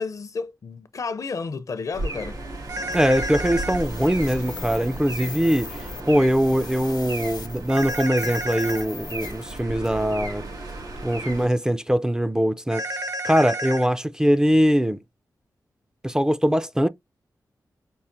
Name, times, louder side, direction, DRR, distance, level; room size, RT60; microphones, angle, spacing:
voice 1, 0.0-2.4, left 4 dB, 55° left, 0.5 m, -31 dB
sound 1, 1.9-11.5, right 2 dB, 75° right, 2.7 m, -35 dB
sound 2, 2.7-3.8 7.7-8.8 12.7-13.9, right 1 dB, 60° right, 0.8 m, -30 dB
sound 3, 2.9-10.1, left 6 dB, 85° left, 0.9 m, -42 dB
voice 2, 2.9-10.4 11.0-12.8 13.2-15.0 16.0-16.9, equal, 10° right, 0.3 m, -22 dB
5.4 x 2.4 x 2.6 m
wide cardioid pair, 95°, 7 cm